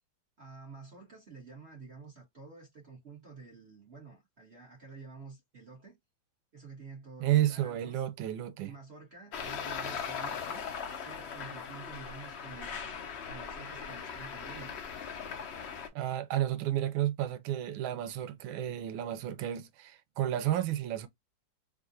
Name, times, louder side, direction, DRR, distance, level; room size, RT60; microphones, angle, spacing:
voice 1, 0.4-6.0 6.5-8.0 8.6-10.7 11.0-14.8, right 4 dB, 35° right, 1.5 m, -50 dB
voice 2, 7.2-8.7 15.9-21.1, right 12 dB, 90° right, 1.4 m, -31 dB
Traffic noise roadway noise, 9.3-15.9, left 6 dB, 75° left, 0.6 m, -39 dB
3.7 x 2.5 x 2.6 m
omnidirectional pair, 2.1 m